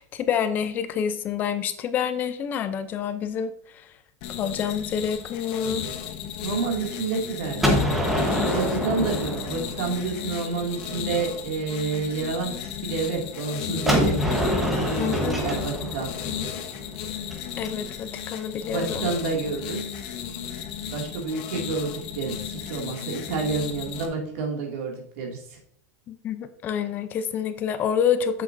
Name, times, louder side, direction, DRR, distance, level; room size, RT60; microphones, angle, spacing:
voice 1, 0.0-3.9 4.4-5.8 8.9-9.1 15.0-15.4 17.6-19.1 26.1-28.4, left 8 dB, 20° left, 11 dB, 0.5 m, -28 dB
sound 1, 4.2-24.1, left 9 dB, 40° left, 0.9 m, -35 dB
voice 2, 6.4-8.0 8.5-14.1 14.6-16.1 18.6-20.0 20.9-25.6, right 4 dB, 55° right, 0 dB, 2.3 m, -29 dB
Gunshot gunfire, 7.6-10.4 13.9-17.7, left 1 dB, 5° right, 1.1 m, -25 dB
7.6 x 6.9 x 2.6 m, 0.69 s
supercardioid pair, 170°, 9 cm